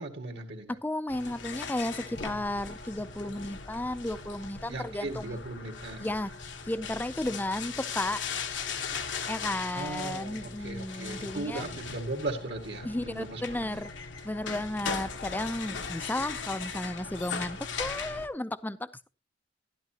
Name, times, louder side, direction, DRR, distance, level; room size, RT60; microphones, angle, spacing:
voice 1, 0.0-0.8 4.7-6.1 9.7-13.8, right 2 dB, 65° right, 2 dB, 1.9 m, -37 dB
voice 2, 0.7-5.4 6.0-6.3 6.6-8.2 9.3-11.6 12.8-13.9 14.2-19.1, left 1 dB, 10° left, 14 dB, 0.5 m, -34 dB
sound 1, 1.1-18.3, left 5 dB, 80° left, 1.2 m, -39 dB
12.5 x 12.0 x 2.8 m, 0.29 s
head